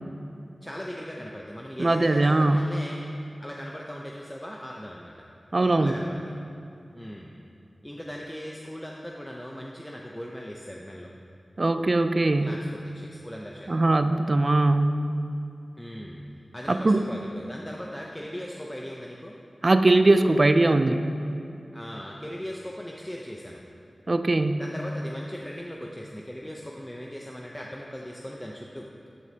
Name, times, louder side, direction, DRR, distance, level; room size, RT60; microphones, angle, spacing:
voice 1, 0.6-3.0 3.4-5.3 5.8-6.3 6.9-7.3 7.8-11.1 12.4-13.7 15.8-16.2 16.5-19.3 21.7-23.6 24.6-28.9, equal, 10° left, -2 dB, 0.7 m, -39 dB
voice 2, 1.8-2.6 5.5-5.9 11.6-12.5 13.7-15.0 16.7-17.0 19.6-21.0 24.1-24.6, right 2 dB, 45° right, 9 dB, 0.4 m, -21 dB
12.5 x 7.7 x 2.9 m, 2.7 s
wide cardioid pair, 50°, 0 cm